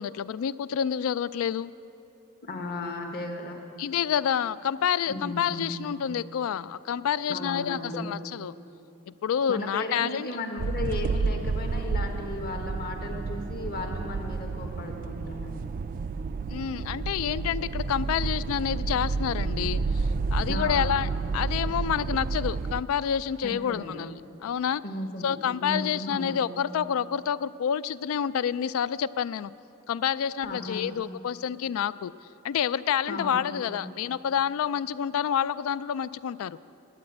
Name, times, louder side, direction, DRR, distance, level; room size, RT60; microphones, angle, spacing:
voice 1, 0.0-1.7 3.8-8.5 9.2-10.3 16.5-24.1 24.4-24.8 25.2-29.5 29.9-32.1 32.4-36.6, left 8 dB, 70° left, 17 dB, 0.3 m, -28 dB
voice 2, 2.4-3.6 5.1-5.8 7.3-8.1 9.5-15.7 20.5-20.9 23.4-23.9 24.8-26.3 30.4-30.9 33.1-33.9, left 2 dB, 45° left, 3 dB, 1.3 m, -35 dB
sound 1, 10.6-22.8, right 4 dB, 40° right, 0.3 m, -30 dB
11.0 x 8.8 x 8.5 m, 2.7 s
head